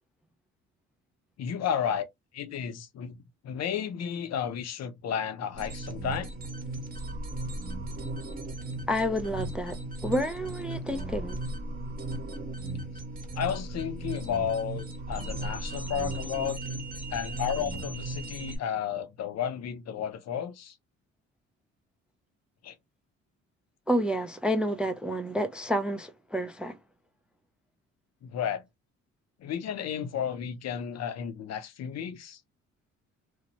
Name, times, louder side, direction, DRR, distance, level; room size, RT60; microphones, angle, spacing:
voice 1, 1.4-2.0 2.3-6.3 12.8-12.9 13.3-16.6 17.1-20.8 22.6-22.8 28.2-28.6 29.4-32.4, left 8 dB, 60° left, 0.6 m, -32 dB
sound 1, 5.6-18.6, right 2 dB, 30° right, 1.0 m, -36 dB
voice 2, 8.9-11.4 23.9-26.8, equal, 5° right, 0.3 m, -29 dB
2.7 x 2.1 x 2.8 m
cardioid pair, 90°, 30 cm